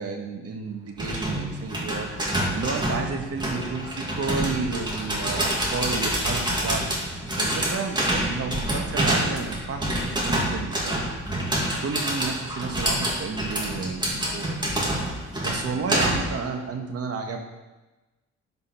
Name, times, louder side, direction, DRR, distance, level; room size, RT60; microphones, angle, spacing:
voice 1, 0.0-11.1 11.6-14.6 15.0-17.4, right 4 dB, 50° right, 4 dB, 1.6 m, -32 dB
sound 1, 1.0-16.4, right 1 dB, 15° right, 2.5 m, -27 dB
11.0 x 5.5 x 6.0 m, 1.1 s
cardioid pair, 90°, 30 cm